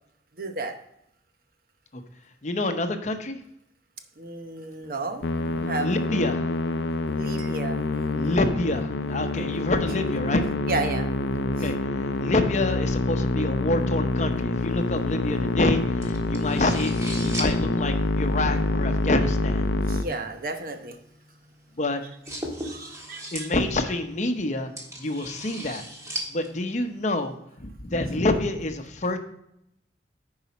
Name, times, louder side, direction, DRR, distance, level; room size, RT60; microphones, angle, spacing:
voice 1, 0.3-0.7 4.2-6.2 7.2-7.9 9.3-9.7 10.7-11.1 11.6-11.7 19.8-21.0 22.6-23.5, right 3 dB, 55° right, 6 dB, 0.9 m, -33 dB
voice 2, 2.4-3.4 5.8-6.4 8.1-10.4 11.6-19.6 21.8-22.0 23.3-24.7 25.0-25.8 26.3-29.2, left 2 dB, 40° left, 7 dB, 0.7 m, -27 dB
Musical instrument, 5.2-20.0, left 2 dB, 90° left, 0.6 m, -26 dB
sound 1, 14.5-27.3, right 1 dB, 20° right, 1.5 m, -40 dB
10.0 x 4.8 x 4.1 m, 0.77 s
head